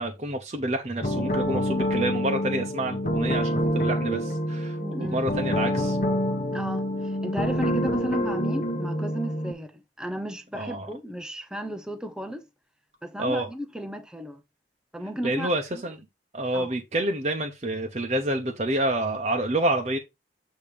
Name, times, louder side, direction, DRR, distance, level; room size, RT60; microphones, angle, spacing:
voice 1, 0.0-6.0 10.5-10.9 13.2-13.5 15.2-16.0 16.3-20.0, right 1 dB, 35° right, 0.9 m, -28 dB
sound 1, 1.0-9.5, equal, 40° left, 1.1 m, -27 dB
voice 2, 4.8-5.2 6.5-12.5 13.0-14.4 14.9-15.8 16.5-16.8, right 1 dB, 5° right, 0.7 m, -34 dB
8.6 x 3.0 x 5.1 m
head